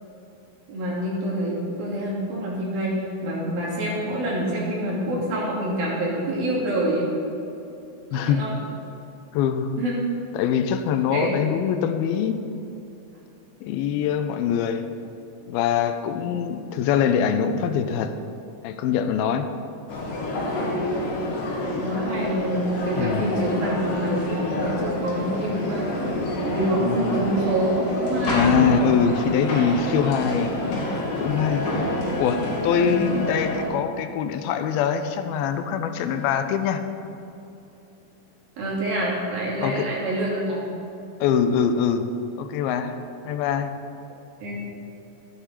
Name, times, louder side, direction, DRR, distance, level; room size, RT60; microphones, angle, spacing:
voice 1, 0.7-7.1 8.1-8.5 9.8-10.0 11.1-11.3 16.2-16.3 21.8-26.1 26.4-28.6 30.6-30.7 32.8-33.2 38.6-40.6 44.4-44.6, right 1 dB, 75° right, -6 dB, 4.6 m, -26 dB
voice 2, 8.1-8.4 9.3-9.8 10.3-12.4 13.6-14.9 15.5-18.1 18.6-19.5 23.0-23.3 28.3-31.7 32.2-36.8 39.6-39.9 41.2-42.1 42.4-43.0 43.2-43.7, left 7 dB, 90° left, 8 dB, 2.5 m, -23 dB
sound 1, 19.9-33.6, left 1 dB, 65° left, 3.4 m, -27 dB
13.5 x 9.3 x 4.9 m, 2.8 s
omnidirectional pair, 4.2 m